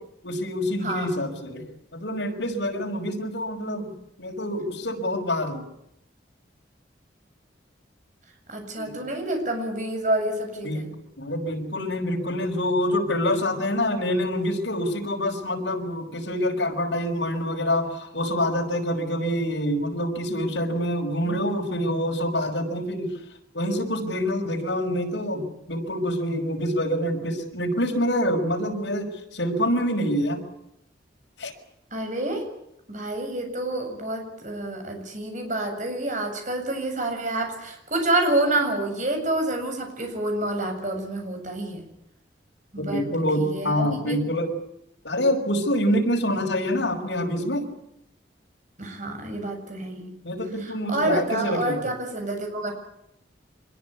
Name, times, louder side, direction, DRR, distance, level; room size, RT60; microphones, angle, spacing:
voice 1, 0.2-1.6 1.9-3.9 4.2-5.6 8.8-9.0 10.6-10.9 11.2-23.2 23.5-30.4 31.4-31.5 42.8-44.5 45.0-47.7 50.2-51.9, equal, 75° left, 3 dB, 5.7 m, -26 dB
voice 2, 8.5-10.9 21.2-21.7 31.9-32.4 32.9-41.8 42.7-43.0 43.4-44.2 48.8-50.1 50.6-52.7, right 2 dB, 40° right, 4 dB, 7.7 m, -28 dB
25.5 x 21.5 x 8.4 m, 0.79 s
head